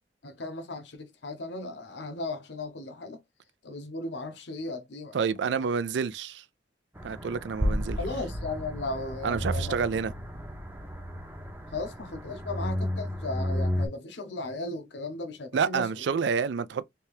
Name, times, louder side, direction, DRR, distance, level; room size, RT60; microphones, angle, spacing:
voice 1, 0.2-3.2 3.6-5.2 8.0-9.8 11.7-15.9, left 2 dB, 70° left, 0.7 m, -36 dB
voice 2, 5.1-6.4 7.0-8.0 9.2-10.1 15.5-16.8, right 6 dB, 70° right, 0.4 m, -28 dB
sound 1, 7.0-13.9, equal, 10° right, 0.7 m, -32 dB
3.3 x 2.8 x 3.1 m
head